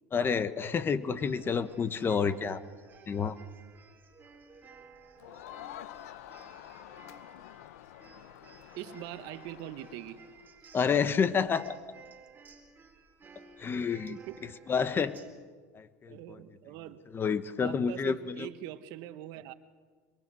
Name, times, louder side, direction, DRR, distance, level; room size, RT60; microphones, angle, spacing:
voice 1, 0.1-2.6 3.1-3.4 10.7-11.8 13.6-15.1 15.7-16.4 17.1-18.5, left 6 dB, 25° left, 13 dB, 1.3 m, -29 dB
sound 1, 1.1-15.3, right 4 dB, 25° right, 4.1 m, -56 dB
Crowd, 5.2-10.5, left 13 dB, 80° left, 1.0 m, -48 dB
voice 2, 8.7-10.2 14.1-14.4 16.1-17.0 17.6-19.5, right 13 dB, 60° right, 12 dB, 1.3 m, -43 dB
25.0 x 23.0 x 6.3 m, 1.5 s
supercardioid pair, 105°, 8 cm